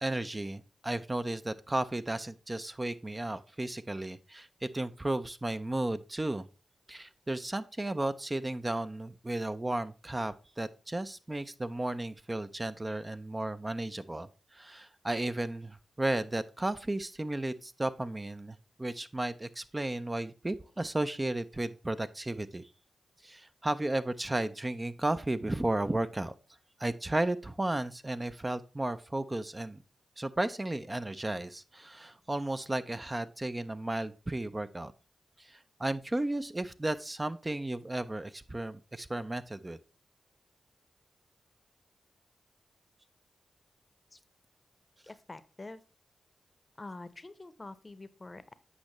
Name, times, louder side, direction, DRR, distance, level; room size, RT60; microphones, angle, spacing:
voice 1, 0.0-6.5 6.9-22.7 23.2-26.3 26.8-29.8 30.2-34.9 35.4-39.8, right 1 dB, 25° right, 11 dB, 0.4 m, -34 dB
voice 2, 45.0-45.8 46.8-48.5, left 2 dB, 35° left, 14 dB, 0.7 m, -46 dB
8.5 x 5.3 x 3.0 m, 0.34 s
cardioid pair, 45°, 0 cm